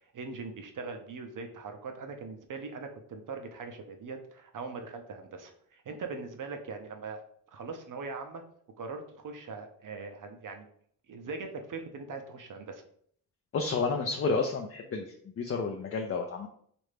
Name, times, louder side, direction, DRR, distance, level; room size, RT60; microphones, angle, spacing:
voice 1, 0.1-7.2 7.5-8.4 8.8-10.7 11.1-12.8, right 4 dB, 60° right, 5 dB, 0.7 m, -41 dB
voice 2, 13.5-16.5, left 4 dB, 40° left, 3 dB, 0.5 m, -31 dB
3.2 x 2.5 x 3.3 m, 0.63 s
cardioid pair, 50°, 37 cm